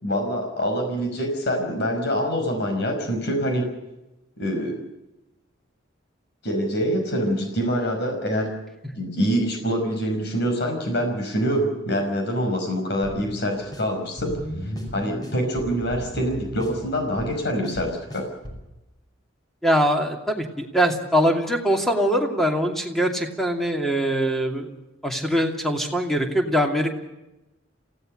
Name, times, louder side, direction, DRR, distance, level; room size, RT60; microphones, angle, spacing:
voice 1, 0.0-3.7 4.4-4.8 6.4-8.5 9.0-14.3 14.6-18.3, equal, 60° left, 4 dB, 5.3 m, -25 dB
sound 1, 13.0-18.7, equal, 20° left, 5.3 m, -36 dB
voice 2, 19.6-24.7 25.0-26.9, equal, ahead, 2 dB, 2.6 m, -22 dB
27.0 x 16.5 x 6.6 m, 0.97 s
head